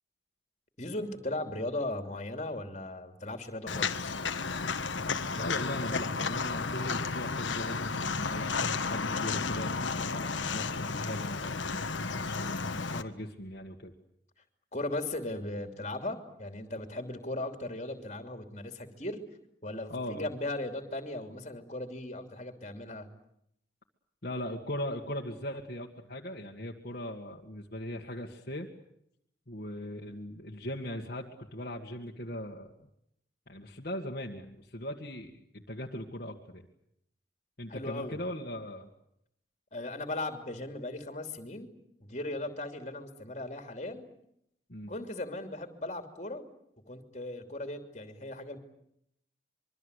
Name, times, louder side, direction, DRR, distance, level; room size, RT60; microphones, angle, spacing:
voice 1, 0.8-4.1 14.7-19.2 19.6-23.1 37.7-38.2 39.7-41.7 42.0-44.1 44.9-46.5 46.9-48.6, left 2 dB, 40° left, 6 dB, 3.1 m, -37 dB
Walk footsteps, 3.7-13.0, left 4 dB, 90° left, 1.5 m, -33 dB
voice 2, 5.4-11.6 12.2-13.9 19.9-20.3 24.2-28.7 29.5-32.7 33.5-36.7 37.6-38.9 44.7-44.9, left 1 dB, 55° left, -1 dB, 2.0 m, -39 dB
25.5 x 23.5 x 8.3 m, 0.75 s
head